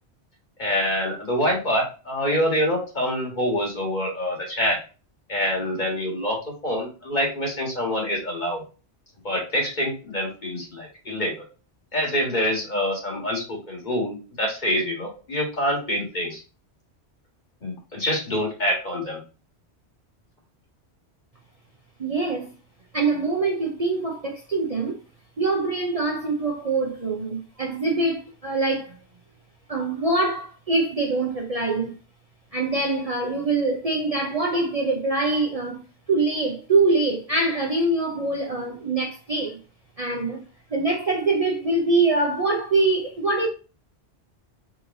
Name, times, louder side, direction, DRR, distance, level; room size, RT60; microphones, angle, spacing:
voice 1, 0.6-4.8 5.3-8.6 9.2-11.4 11.9-16.4 17.6-19.2, equal, 40° left, 1.7 m, -26 dB
voice 2, 22.0-22.5 22.9-25.0 25.4-28.9 29.7-31.9 32.5-35.8 36.1-39.6 40.0-40.4 40.7-43.5, right 3 dB, 40° right, 0.6 m, -24 dB
4.7 x 3.2 x 2.6 m
omnidirectional pair, 1.1 m